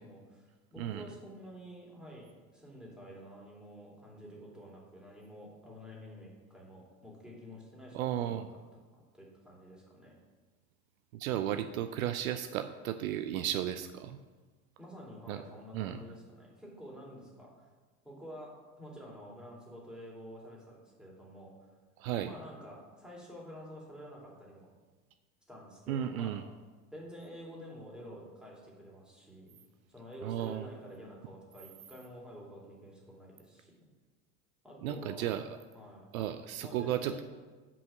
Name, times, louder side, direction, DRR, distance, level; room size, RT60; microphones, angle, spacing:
voice 1, 0.0-8.6 8.9-10.1 14.8-17.7 18.0-21.5 22.2-24.7 25.5-26.3 26.9-29.5 29.9-33.7 34.6-35.3 35.7-36.1 36.6-37.2, equal, ahead, -4 dB, 2.5 m, -49 dB
voice 2, 7.9-8.4 11.1-14.2 15.3-15.4 15.7-16.0 22.0-22.3 25.9-26.4 30.2-30.7 34.8-35.6 36.1-37.2, right 11 dB, 70° right, 10 dB, 0.5 m, -34 dB
5.6 x 5.3 x 6.7 m, 1.3 s
hypercardioid pair, 75°, 44 cm